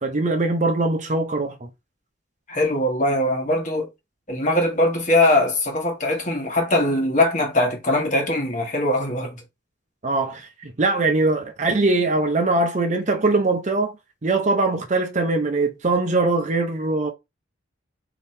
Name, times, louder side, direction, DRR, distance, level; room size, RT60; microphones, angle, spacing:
voice 1, 0.0-1.7 10.0-13.9 14.2-17.1, right 2 dB, 35° right, 0.6 m, -22 dB
voice 2, 2.5-3.9 4.3-9.4, left 1 dB, 40° left, 1.4 m, -21 dB
3.5 x 2.8 x 4.3 m
head